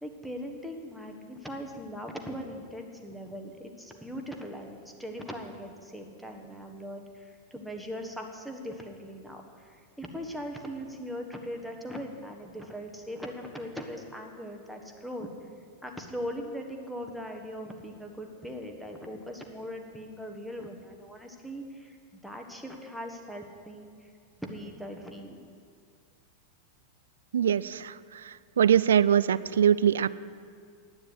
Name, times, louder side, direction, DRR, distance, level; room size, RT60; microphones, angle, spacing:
voice 1, 0.0-15.3 15.8-23.9 24.4-25.4, equal, ahead, 2 dB, 1.3 m, -40 dB
voice 2, 27.3-27.9 28.6-30.1, right 9 dB, 65° right, 18 dB, 0.3 m, -22 dB
9.7 x 9.4 x 8.1 m, 2.2 s
figure-of-eight pair, 90°, 0 cm